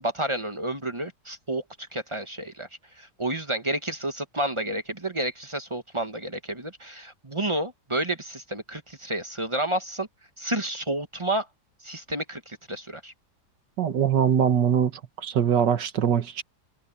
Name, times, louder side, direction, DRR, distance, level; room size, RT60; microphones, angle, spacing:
voice 1, 0.0-2.7 2.9-10.1 10.4-11.5 11.8-13.1, right 1 dB, 20° right, 1.1 m, -30 dB
voice 2, 13.8-14.9 15.2-16.4, right 8 dB, 85° right, 2.0 m, -22 dB
omnidirectional pair, 1.8 m